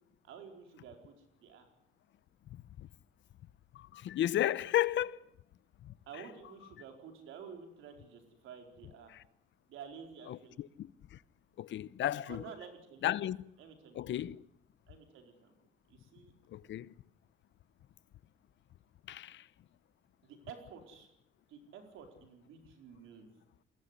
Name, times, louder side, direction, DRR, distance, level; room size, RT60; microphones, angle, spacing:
voice 1, 0.2-1.7 6.1-9.1 9.7-10.6 12.3-13.1 13.6-14.0 14.9-15.5 15.9-16.3 20.2-21.1 21.5-23.3, right 6 dB, 90° right, 4.6 m, -51 dB
voice 2, 2.5-2.9 3.7-5.2 5.8-5.9 9.1-9.2 10.3-11.2 11.6-12.4 13.0-13.4 13.9-14.5 16.5-16.9 19.1-19.5, left 12 dB, 70° left, 0.8 m, -34 dB
22.0 x 16.5 x 9.9 m
cardioid pair, 90°, 20 cm